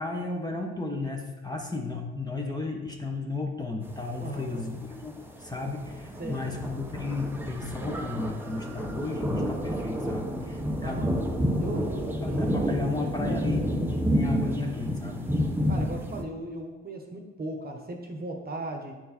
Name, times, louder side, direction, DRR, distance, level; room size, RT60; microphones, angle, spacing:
voice 1, 0.0-11.0 12.2-13.7 14.1-15.2, left 3 dB, 15° left, 1 dB, 1.1 m, -34 dB
sound 1, 3.9-16.2, equal, 5° right, 0.9 m, -29 dB
voice 2, 4.2-4.7 6.2-6.5 10.7-11.3 11.6-12.8 15.7-18.9, right 1 dB, 30° right, 2 dB, 1.2 m, -37 dB
9.3 x 4.6 x 4.4 m, 1.2 s
cardioid pair, 90°, 30 cm